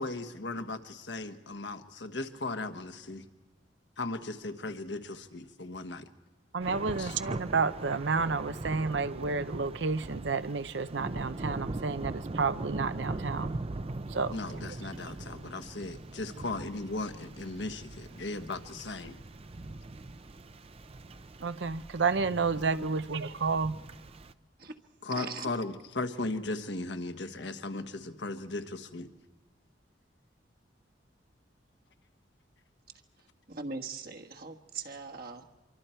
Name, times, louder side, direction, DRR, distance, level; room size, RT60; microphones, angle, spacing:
voice 1, 0.0-3.2 4.0-6.1 7.0-7.2 14.3-19.2 25.0-29.1, left 2 dB, 70° left, 1.3 m, -37 dB
voice 2, 6.5-13.6 14.1-14.3 21.4-23.8, right 4 dB, 75° right, 0.7 m, -30 dB
Thunder / Rain, 6.6-24.3, right 2 dB, 30° right, 0.6 m, -41 dB
voice 3, 25.2-25.5 33.5-35.4, right 4 dB, 55° right, 1.4 m, -40 dB
26.0 x 24.0 x 4.5 m
head